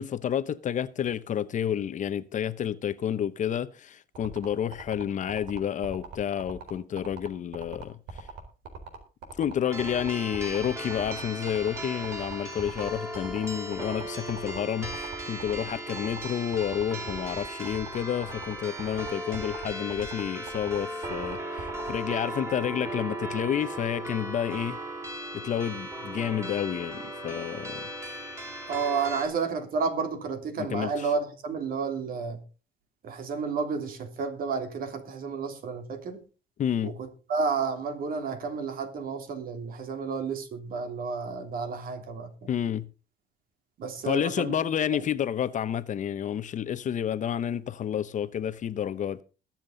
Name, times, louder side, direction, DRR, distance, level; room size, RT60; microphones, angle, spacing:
voice 1, 0.0-8.0 9.4-24.8 25.3-27.9 30.6-30.9 36.6-36.9 42.5-42.9 44.0-49.2, left 9 dB, 45° left, 0.9 m, -30 dB
sound 1, 4.1-21.9, right 5 dB, 80° right, 4.2 m, -41 dB
sound 2, 9.6-29.3, right 1 dB, 15° right, 4.8 m, -37 dB
voice 2, 28.7-32.4 33.0-36.2 36.8-42.5 43.8-44.5 45.0-45.1, right 5 dB, 60° right, 3.3 m, -31 dB
21.5 x 7.5 x 3.9 m
cardioid pair, 110°, 17 cm